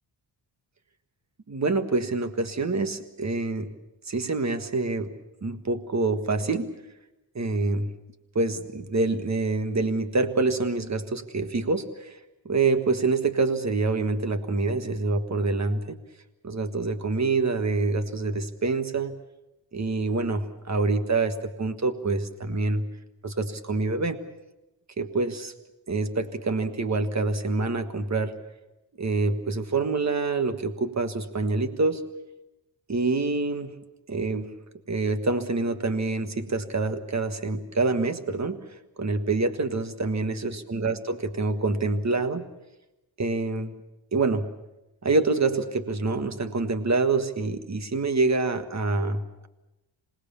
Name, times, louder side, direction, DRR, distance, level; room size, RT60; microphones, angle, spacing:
voice 1, 1.5-3.7 4.1-5.1 5.4-6.7 7.3-7.9 8.3-12.2 12.4-16.0 16.4-19.2 19.7-22.9 23.2-24.2 25.0-25.5 25.9-28.3 29.0-32.0 32.9-33.7 34.1-34.5 34.9-38.6 39.0-42.4 43.2-43.7 44.1-44.5 45.0-49.5, right 3 dB, 35° right, 9 dB, 1.6 m, -26 dB
26.5 x 20.0 x 7.1 m, 0.96 s
wide cardioid pair, 145°, 47 cm